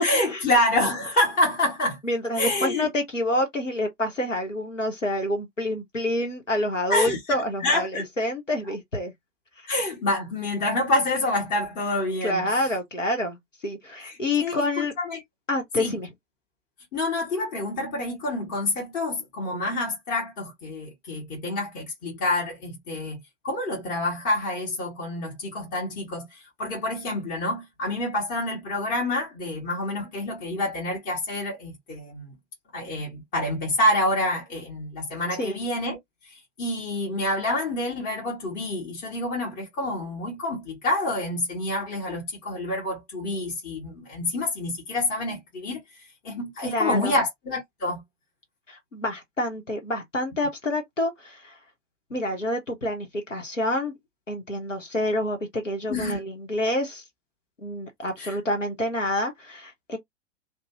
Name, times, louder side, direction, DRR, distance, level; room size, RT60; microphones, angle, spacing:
voice 1, 0.0-2.0 2.4-2.9 6.9-8.1 9.7-12.6 14.1-15.2 15.8-16.0 16.9-32.3 32.7-36.0 36.2-45.8 46.2-48.0 55.9-56.2 58.2-58.4, left 1 dB, 25° left, 1.1 m, -27 dB
voice 2, 2.0-9.1 9.6-9.7 12.2-13.4 13.6-14.9 15.5-16.1 35.4-35.6 46.6-47.1 48.7-51.5 52.1-53.9 54.3-57.0 57.6-60.0, left 1 dB, 90° left, 1.1 m, -28 dB
2.6 x 2.3 x 2.9 m
figure-of-eight pair, 100°, 36 cm